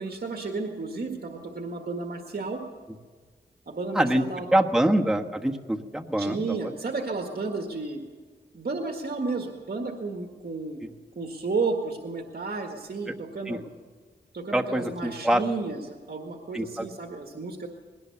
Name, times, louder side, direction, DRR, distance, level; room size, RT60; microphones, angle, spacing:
voice 1, 0.0-2.6 3.7-4.5 6.2-8.0 8.5-10.8 11.2-13.6 14.3-17.7, right 3 dB, 55° right, 2 dB, 1.8 m, -32 dB
voice 2, 4.5-6.7 13.5-13.6 14.5-15.4 16.5-16.9, right 1 dB, 5° right, 2 dB, 1.4 m, -25 dB
20.5 x 18.0 x 7.0 m, 1.5 s
wide cardioid pair, 95°, 18 cm